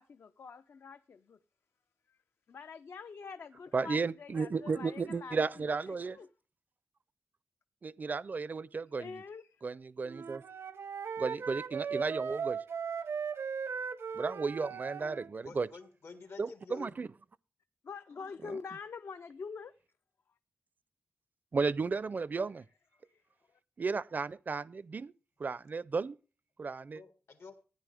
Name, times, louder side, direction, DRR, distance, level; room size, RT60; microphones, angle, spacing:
voice 1, 0.0-1.4 2.1-2.2 2.5-6.3 9.0-9.6 17.8-19.8 23.1-23.2 23.5-23.6, left 5 dB, 65° left, 0.5 m, -46 dB
voice 2, 3.7-6.2 7.8-9.2 9.6-10.4 11.2-12.6 14.1-15.7 16.4-17.1 21.5-22.6 23.8-25.1 25.4-26.2 26.6-27.0, right 4 dB, 45° right, 0.4 m, -34 dB
Wind instrument woodwind instrument, 10.1-15.3, right 6 dB, 80° right, 0.8 m, -38 dB
voice 3, 15.4-17.1 26.9-27.6, left 4 dB, 80° left, 1.9 m, -50 dB
14.5 x 9.7 x 3.4 m
wide cardioid pair, 130°, 4 cm